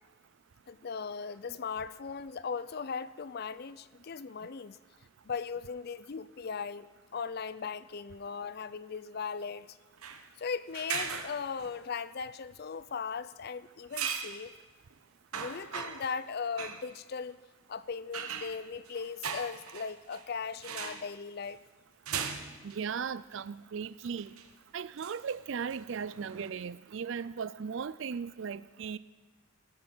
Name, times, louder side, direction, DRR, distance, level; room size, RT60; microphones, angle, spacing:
voice 1, 0.7-4.8 5.2-9.8 10.4-14.5 15.3-17.4 17.7-21.6, left 5 dB, 45° left, 0.4 m, -38 dB
sound 1, 10.0-10.2 10.7-11.8 13.9-14.4 14.9-15.0 15.3-16.2 16.6-16.9 18.1-20.2 20.6-21.1 22.1-22.8 23.3-23.4 24.2-24.5 25.0-26.5, right 7 dB, 85° right, 1.1 m, -38 dB
voice 2, 22.6-24.4 24.7-29.0, right 6 dB, 60° right, 0.4 m, -37 dB
17.5 x 8.6 x 6.1 m
head